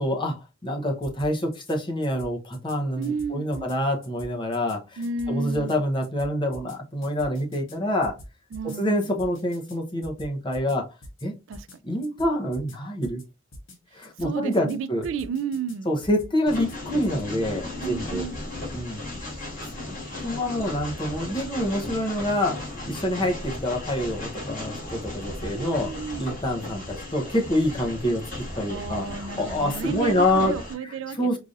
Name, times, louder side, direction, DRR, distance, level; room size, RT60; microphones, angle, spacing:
voice 1, 0.0-5.0 5.3-8.2 8.8-10.9 11.2-11.3 11.8-13.2 13.9-15.0 15.8-18.3 18.7-19.0 20.2-25.9 26.2-28.2 28.6-30.5 30.8-31.4, left 1 dB, 25° left, 0.8 m, -26 dB
sound 1, 1.0-1.8 2.0-2.8 3.0-3.8 4.0-4.8 5.0-5.8 6.0-6.8 7.0-7.8 8.0-8.8 9.0-9.8 10.0-10.8 11.0-11.2 11.5-11.8 12.0-12.8 13.0-13.2 13.5-13.8 14.0-14.8 15.0-15.8 16.0-16.8 17.0-17.2, left 1 dB, 70° left, 1.2 m, -44 dB
voice 2, 3.0-3.7 5.0-5.8 8.5-9.1 11.5-11.8 14.2-15.9 17.8-18.4 25.5-26.3 28.7-31.4, right 5 dB, 65° right, 0.3 m, -32 dB
Train, 16.5-30.7, left 2 dB, 45° left, 2.3 m, -36 dB
4.8 x 2.5 x 2.6 m
head